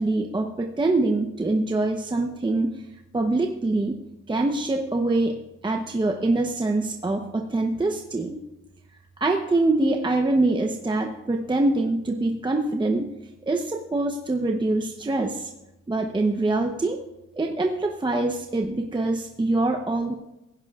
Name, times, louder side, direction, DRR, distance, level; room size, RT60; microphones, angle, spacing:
voice 1, 0.0-2.8 3.1-4.0 4.3-8.4 9.2-13.1 13.4-15.5 15.9-17.0 17.4-20.1, right 2 dB, 15° right, 4 dB, 0.9 m, -24 dB
16.5 x 16.0 x 2.4 m, 0.95 s
cardioid pair, 90°, 30 cm